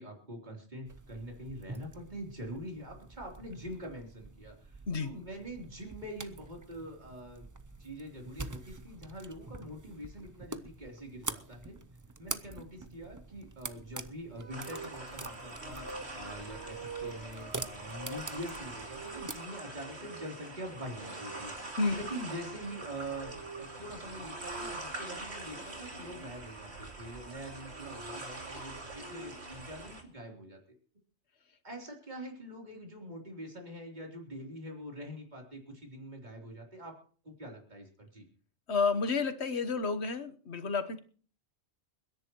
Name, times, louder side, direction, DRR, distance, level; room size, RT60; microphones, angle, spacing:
voice 1, 0.0-7.5 7.8-11.8 12.2-21.5 21.9-23.3 23.6-30.6 31.6-37.0 37.2-38.3, equal, 40° right, 0 dB, 3.7 m, -44 dB
sound 1, 0.8-19.3, right 3 dB, 20° right, 0.5 m, -46 dB
sound 2, 14.4-26.3 27.4-29.6, right 3 dB, 85° right, 2.1 m, -49 dB
sound 3, 14.5-30.0, right 2 dB, 70° right, 3.0 m, -44 dB
voice 2, 38.7-41.0, left 4 dB, 75° left, 10 dB, 1.5 m, -30 dB
29.5 x 10.5 x 3.1 m, 0.43 s
omnidirectional pair, 1.1 m